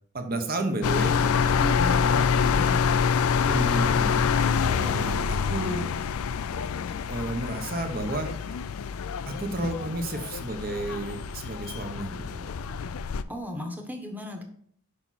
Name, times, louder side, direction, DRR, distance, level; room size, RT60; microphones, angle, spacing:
voice 1, 0.1-1.6 3.4-5.9 7.1-8.3 9.4-12.5, right 1 dB, 45° right, 5 dB, 1.1 m, -32 dB
sound 1, 0.8-13.2, left 6 dB, 80° left, 0.4 m, -26 dB
voice 2, 1.6-2.8 13.3-14.4, left 1 dB, 10° right, 3 dB, 1.1 m, -35 dB
6.9 x 5.6 x 4.2 m, 0.62 s
head